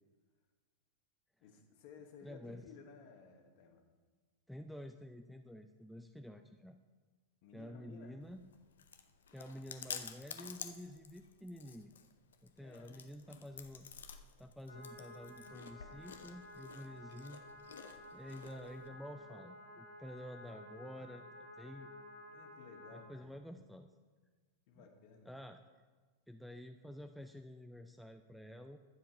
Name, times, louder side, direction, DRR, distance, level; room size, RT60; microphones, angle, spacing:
voice 1, 1.4-3.8 7.4-8.1 12.6-13.2 22.3-23.4 24.7-25.3, left 5 dB, 45° left, 4 dB, 1.4 m, -57 dB
voice 2, 2.2-2.7 4.5-6.8 7.5-8.4 9.3-11.9 12.4-13.9 14.4-17.4 18.1-21.9 22.9-23.9 24.7-24.9 25.3-25.6 26.3-28.8, left 1 dB, ahead, 6 dB, 0.4 m, -50 dB
Chewing mastication, 8.2-18.9, left 7 dB, 65° left, 0.6 m, -51 dB
sound 1, 14.7-23.0, left 1 dB, 85° left, 2.6 m, -53 dB
11.0 x 7.3 x 4.4 m, 1.4 s
figure-of-eight pair, 90°, 0 cm